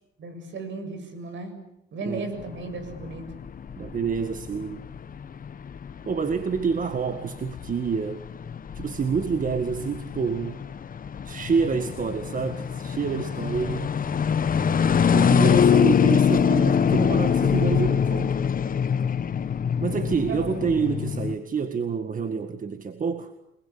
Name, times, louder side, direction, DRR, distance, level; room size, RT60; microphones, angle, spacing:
voice 1, 0.2-1.6 1.9-3.3 20.3-20.5, right 3 dB, 70° right, 8 dB, 7.6 m, -35 dB
sound 1, 2.4-21.3, left 7 dB, 45° left, 1.2 m, -24 dB
voice 2, 3.8-4.8 6.0-8.2 8.8-10.6 11.2-13.9 15.1-18.3 19.8-23.3, right 5 dB, 40° right, 9 dB, 1.9 m, -28 dB
28.5 x 21.0 x 8.7 m, 0.83 s
cardioid pair, 90°, 20 cm